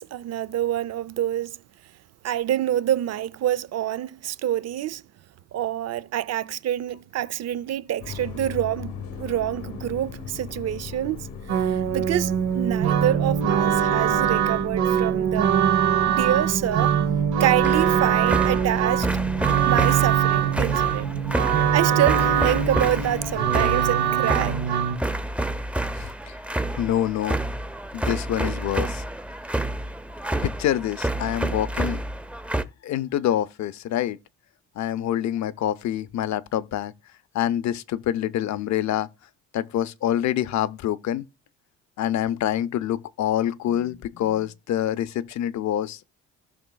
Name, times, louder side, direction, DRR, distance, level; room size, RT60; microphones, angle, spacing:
voice 1, 0.0-1.6 2.2-5.0 5.5-15.5 16.1-16.9 17.4-19.1 19.6-21.1 21.7-24.6, right 12 dB, 55° right, 0.5 m, -26 dB
sound 1, 8.0-23.7, left 5 dB, 90° left, 1.3 m, -37 dB
sound 2, 11.5-25.0, right 9 dB, 75° right, 0.9 m, -22 dB
sound 3, 17.6-32.6, right 1 dB, 5° right, 0.6 m, -29 dB
voice 2, 26.0-26.3 26.8-27.4 27.9-29.0 30.4-32.0 32.8-34.2 34.8-36.9 37.3-39.1 39.5-41.2 42.0-46.0, left 11 dB, 65° left, 0.6 m, -26 dB
16.0 x 6.0 x 2.3 m
cardioid pair, 90°, 30 cm